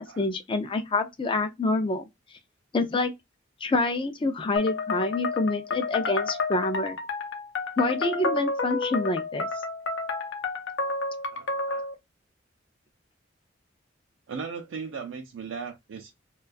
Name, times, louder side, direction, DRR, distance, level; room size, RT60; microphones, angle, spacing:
voice 1, 0.0-2.0 2.7-3.1 3.6-7.0 7.8-9.5, left 2 dB, 25° left, 0.4 m, -27 dB
sound 1, 4.6-11.9, left 3 dB, 75° left, 0.6 m, -30 dB
voice 2, 11.3-11.9 14.3-16.1, right 5 dB, 80° right, 0.4 m, -37 dB
2.3 x 2.3 x 2.4 m
head